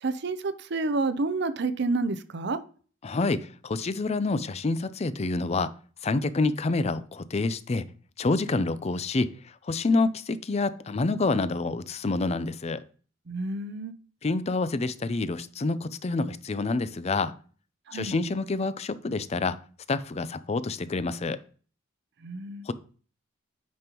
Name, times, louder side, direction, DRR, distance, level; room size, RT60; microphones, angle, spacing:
voice 1, 0.0-2.6 13.3-13.9 17.9-18.2 22.2-22.7, right 3 dB, 60° right, 0.6 m, -29 dB
voice 2, 3.0-5.7 6.0-7.9 8.2-9.3 9.6-12.8 14.2-17.3 17.9-19.6 19.9-21.4 22.7-22.8, left 3 dB, 35° left, 0.4 m, -27 dB
9.3 x 5.3 x 2.9 m
head